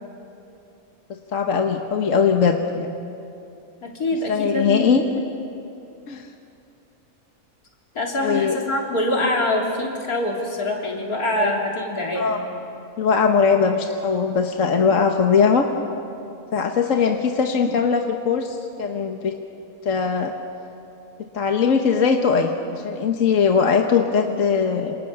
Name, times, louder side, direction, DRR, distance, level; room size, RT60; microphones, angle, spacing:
voice 1, 1.3-2.9 4.3-5.0 6.1-6.3 8.2-8.6 11.4-11.5 12.2-12.4 13.0-15.6 16.5-19.3 19.8-20.3 21.3-25.0, left 6 dB, 60° left, 3 dB, 1.6 m, -20 dB
voice 2, 3.8-5.2 7.9-12.4, left 1 dB, 85° left, -1 dB, 4.0 m, -25 dB
28.0 x 27.5 x 6.9 m, 2.7 s
omnidirectional pair, 1.5 m